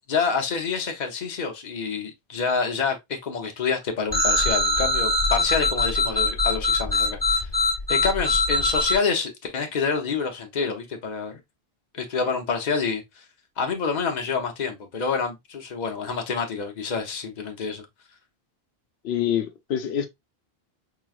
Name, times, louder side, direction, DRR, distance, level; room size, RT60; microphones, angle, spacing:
voice 1, 0.1-7.5 7.9-11.4 11.9-13.0 13.6-17.9, left 5 dB, 45° left, 0.9 m, -27 dB
sound 1, 4.1-8.9, left 2 dB, 25° left, 1.2 m, -22 dB
voice 2, 19.0-20.1, left 10 dB, 90° left, 0.9 m, -26 dB
4.7 x 3.1 x 2.3 m
omnidirectional pair, 1.0 m